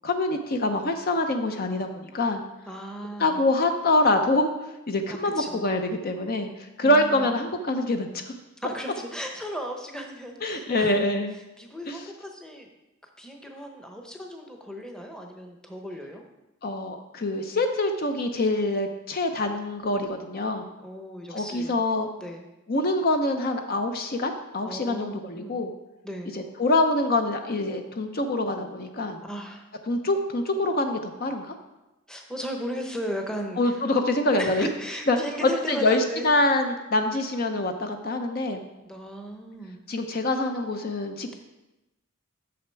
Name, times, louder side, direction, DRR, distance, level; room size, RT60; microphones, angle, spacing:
voice 1, 0.0-2.4 3.2-8.3 10.4-11.3 11.9-12.0 16.6-20.7 21.3-22.1 22.7-25.7 26.3-29.2 29.9-31.5 33.6-34.7 35.1-38.6 39.9-41.3, left 2 dB, 45° left, 6 dB, 0.6 m, -25 dB
voice 2, 2.7-3.4 5.4-5.6 6.8-7.3 8.6-11.1 11.6-12.7 13.2-16.2 20.8-21.8 22.2-22.4 24.6-25.6 26.0-26.3 29.2-29.6 32.1-33.8 34.3-36.3 38.8-39.8 41.3-41.4, equal, 5° left, 3 dB, 0.8 m, -36 dB
8.5 x 6.8 x 4.5 m, 0.99 s
head